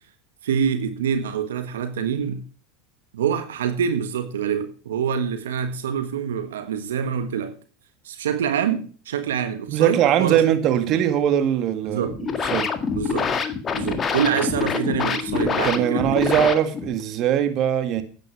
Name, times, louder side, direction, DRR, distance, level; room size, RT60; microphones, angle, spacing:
voice 1, 0.4-2.4 3.1-7.5 8.0-10.4 10.8-11.0 11.9-12.2 12.9-13.3 13.7-16.5, right 7 dB, 85° right, 1.4 m, -26 dB
voice 2, 9.7-12.1 12.4-12.7 15.5-18.0, right 10 dB, 45° right, 1.9 m, -21 dB
sound 1, 12.0-17.0, left 5 dB, 30° left, 1.7 m, -26 dB
12.0 x 9.2 x 4.6 m
hypercardioid pair, 100°, 0 cm